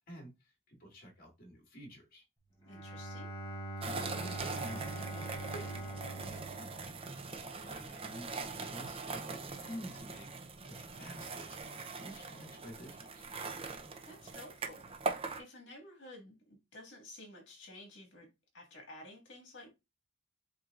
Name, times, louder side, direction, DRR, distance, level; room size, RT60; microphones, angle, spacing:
voice 1, 0.1-2.2 3.8-5.7 6.0-6.7 7.3-9.0 9.3-11.6 12.0-13.3, equal, 45° left, 2.2 m, -50 dB
voice 2, 2.6-3.3 14.0-14.8 15.4-18.3 18.5-19.7, left 1 dB, 65° left, 1.8 m, -52 dB
Bowed string instrument, 2.6-7.6, right 2 dB, 20° left, 1.0 m, -43 dB
sound 1, 3.8-15.4, right 3 dB, 30° right, 0.6 m, -42 dB
7.7 x 2.8 x 2.4 m
head